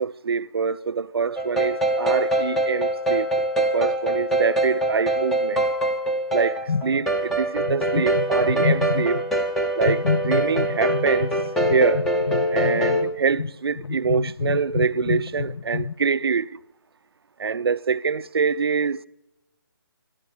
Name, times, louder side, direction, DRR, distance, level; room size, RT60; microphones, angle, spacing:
voice 1, 0.0-5.7 6.3-9.2 9.8-11.4 11.7-12.1 12.5-16.6 17.4-19.1, right 5 dB, 80° right, 0.5 m, -25 dB
sound 1, 1.4-13.0, right 1 dB, 5° left, 0.6 m, -24 dB
sound 2, 6.7-7.3 7.6-9.3 9.8-15.9, left 5 dB, 90° left, 0.5 m, -28 dB
22.0 x 12.0 x 4.9 m
hypercardioid pair, 155°, 13 cm